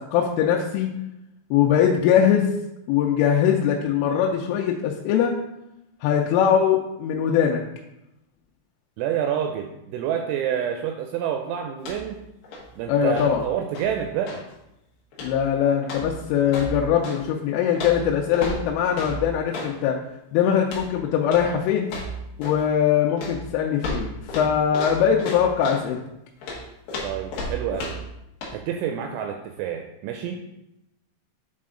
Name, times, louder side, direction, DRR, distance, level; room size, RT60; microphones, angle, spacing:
voice 1, 0.1-0.9 1.5-2.5 2.9-5.3 6.0-7.6 12.9-13.4 15.2-20.0 20.3-21.9 22.4-26.0, left 8 dB, 85° left, 0 dB, 3.1 m, -21 dB
voice 2, 9.0-12.2 12.8-14.4 27.0-28.0 28.5-30.4, right 9 dB, 85° right, 4 dB, 2.8 m, -28 dB
sound 1, 11.8-12.2 12.4-14.5 15.1-15.5 15.8-17.2 17.7-19.8 20.6-20.9 21.2-21.5 21.8-22.7 23.2-25.9 26.4-28.1 28.4-28.6, left 1 dB, 70° left, 2.2 m, -34 dB
7.7 x 4.2 x 3.7 m, 0.87 s
omnidirectional pair, 5.7 m